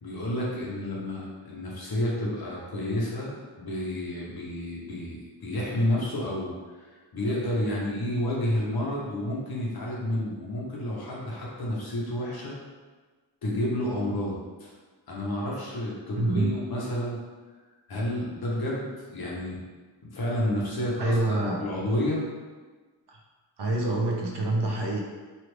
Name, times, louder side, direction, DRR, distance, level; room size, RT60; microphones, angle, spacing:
voice 1, 0.0-6.8 7.1-12.5 13.4-14.7 15.1-17.2 17.9-19.6 20.1-21.2 21.6-22.3, left 1 dB, 55° left, -4 dB, 0.8 m, -30 dB
voice 2, 16.2-16.5 21.0-21.6 23.1-23.2 23.6-25.0, right 2 dB, 65° right, -1 dB, 0.7 m, -26 dB
3.2 x 2.4 x 3.1 m, 1.4 s
wide cardioid pair, 175°, 44 cm